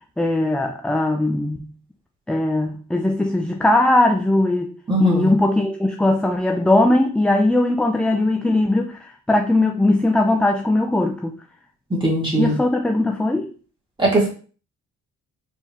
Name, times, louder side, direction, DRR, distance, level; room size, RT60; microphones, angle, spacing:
voice 1, 0.2-1.7 2.3-4.7 5.0-11.4 12.4-13.5, left 2 dB, 5° left, 3 dB, 0.5 m, -19 dB
voice 2, 4.9-5.3 12.0-12.5 14.0-14.3, right 1 dB, 15° right, -4 dB, 2.3 m, -19 dB
4.6 x 3.5 x 3.0 m, 0.39 s
cardioid pair, 90°, 30 cm